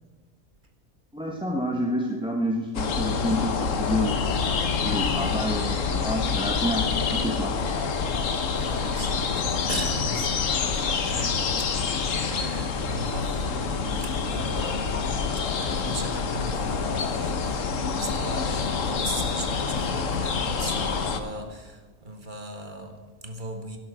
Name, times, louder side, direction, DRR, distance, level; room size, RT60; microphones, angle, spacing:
voice 1, 1.1-4.2 4.8-7.5, equal, 5° right, 0 dB, 1.0 m, -28 dB
sound 1, 2.7-21.2, left 5 dB, 65° left, 1.4 m, -27 dB
voice 2, 8.5-14.9 15.6-23.8, right 1 dB, 35° right, 4 dB, 1.7 m, -38 dB
12.5 x 11.0 x 6.8 m, 1.5 s
omnidirectional pair, 1.5 m